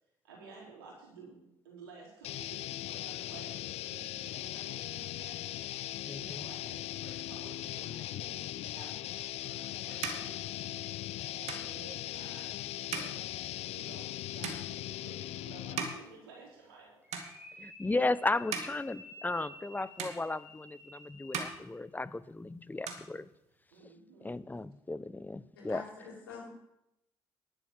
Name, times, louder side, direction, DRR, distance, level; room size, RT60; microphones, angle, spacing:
voice 1, 0.2-5.6 6.1-10.8 11.3-13.4 13.7-17.0 23.7-24.3 26.1-26.2, right 4 dB, 85° right, -2 dB, 4.2 m, -53 dB
sound 1, 2.2-15.9, left 14 dB, 60° left, 0.4 m, -39 dB
voice 2, 6.1-6.5 17.6-23.3 23.8-23.9 24.2-25.8, left 2 dB, 15° left, 16 dB, 0.7 m, -35 dB
sound 2, 9.2-16.8 17.1-17.8 18.2-19.7 20.0-20.9 21.2-22.4 22.7-23.8, right 6 dB, 65° right, 2.2 m, -42 dB
sound 3, 17.0-21.8, equal, 10° right, 4.7 m, -52 dB
voice 3, 25.6-26.5, left 4 dB, 90° left, -3 dB, 4.3 m, -46 dB
11.5 x 8.6 x 7.4 m, 0.82 s
hypercardioid pair, 50°, 12 cm